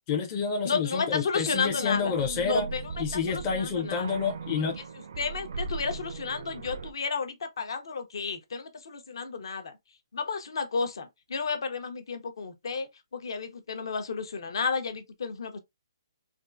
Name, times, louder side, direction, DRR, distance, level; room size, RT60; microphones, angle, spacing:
voice 1, 0.0-2.7 3.0-4.8, left 5 dB, 15° left, 0.5 m, -29 dB
voice 2, 0.6-2.1 2.5-2.8 3.1-4.1 5.2-9.7 10.1-15.6, left 5 dB, 55° left, 0.7 m, -32 dB
sound 1, 1.5-6.9, right 4 dB, 50° right, 0.4 m, -38 dB
3.5 x 2.4 x 2.5 m
hypercardioid pair, 170°, 3 cm